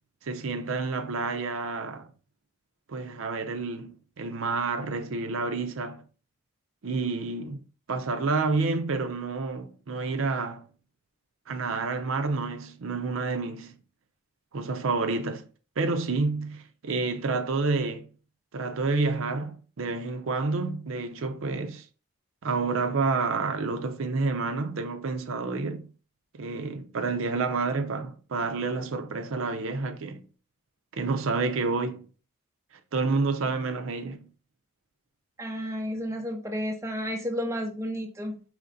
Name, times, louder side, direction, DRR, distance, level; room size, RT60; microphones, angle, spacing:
voice 1, 0.2-2.1 2.9-6.0 6.8-7.6 7.9-10.7 11.5-13.7 14.5-15.4 15.8-18.1 18.5-21.9 22.4-25.9 26.3-30.2 30.9-32.0 32.9-34.3, right 3 dB, 70° right, 0.5 m, -29 dB
voice 2, 35.4-38.4, equal, 15° right, 0.4 m, -32 dB
5.0 x 3.1 x 2.6 m
head